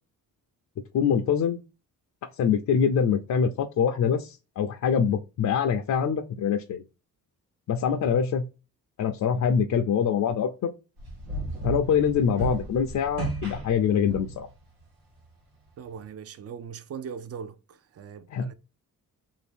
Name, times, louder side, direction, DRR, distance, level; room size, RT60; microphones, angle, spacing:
voice 1, 0.9-1.6 2.4-6.8 7.7-8.5 9.0-10.7 11.6-14.5 18.3-18.5, left 7 dB, 55° left, 0.4 m, -24 dB
sound 1, 11.0-14.5, right 2 dB, 90° right, 1.3 m, -34 dB
voice 2, 15.8-17.6 17.9-18.5, right 7 dB, 45° right, 0.4 m, -39 dB
2.6 x 2.6 x 3.4 m
cardioid pair, 100°, 36 cm